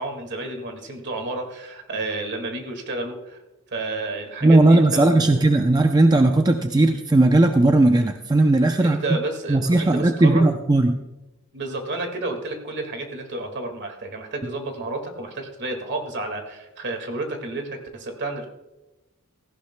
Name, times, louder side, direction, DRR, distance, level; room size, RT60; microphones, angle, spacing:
voice 1, 0.0-3.4 3.7-5.4 8.8-10.5 11.5-18.5, right 2 dB, 55° right, 4 dB, 1.9 m, -31 dB
voice 2, 4.4-9.0 9.5-11.0, right 2 dB, 20° right, 5 dB, 0.5 m, -17 dB
17.0 x 15.0 x 2.2 m, 1.0 s
head